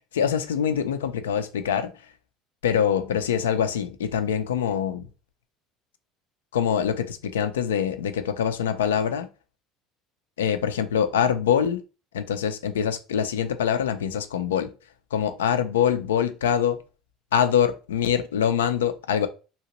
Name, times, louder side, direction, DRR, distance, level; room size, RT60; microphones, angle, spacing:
voice 1, 0.1-1.9 2.6-5.1 6.5-9.3 10.4-11.8 12.1-14.7 15.1-16.8 17.3-19.3, left 8 dB, 85° left, 0.4 m, -24 dB
2.9 x 2.8 x 2.9 m
hypercardioid pair, 70°, 0 cm